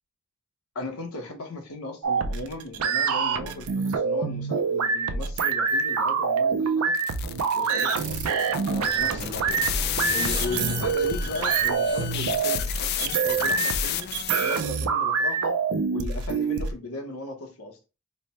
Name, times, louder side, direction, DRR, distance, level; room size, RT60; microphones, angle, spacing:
voice 1, 0.7-6.9 7.5-9.6 10.1-14.1 14.4-15.5 15.9-17.8, left 2 dB, 90° left, 0.9 m, -36 dB
sound 1, 2.0-16.7, right 5 dB, 85° right, 0.5 m, -26 dB
sound 2, 7.0-14.7, left 11 dB, 45° left, 0.3 m, -32 dB
sound 3, 8.6-14.1, right 1 dB, 20° right, 0.6 m, -40 dB
3.2 x 2.1 x 4.1 m
head